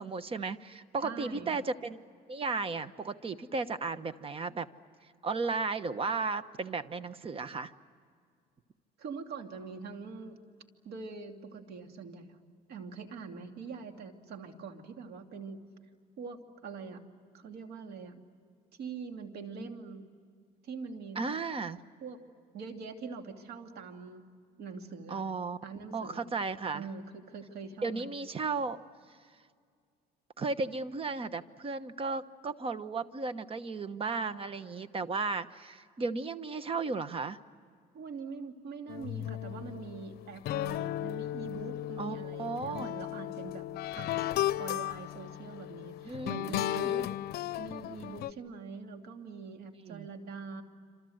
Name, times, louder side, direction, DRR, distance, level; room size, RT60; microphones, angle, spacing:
voice 1, 0.0-2.0 2.3-4.7 5.2-7.7 21.1-21.8 25.1-25.6 25.9-26.9 27.8-28.8 30.4-37.4 42.0-42.9 46.0-46.9 49.8-50.1, right 4 dB, 35° right, 13 dB, 1.1 m, -35 dB
voice 2, 1.0-1.6 9.0-10.4 10.8-12.4 12.7-15.6 16.2-17.0 17.3-18.2 18.8-20.1 20.6-21.2 22.0-22.2 22.5-24.3 24.6-25.2 25.6-26.2 26.7-28.1 37.9-44.3 44.6-50.6, right 5 dB, 70° right, 5 dB, 2.7 m, -43 dB
sound 1, 38.9-48.3, left 14 dB, 70° left, 0.7 m, -35 dB
27.0 x 27.0 x 7.9 m, 2.1 s
cardioid pair, 110°, 17 cm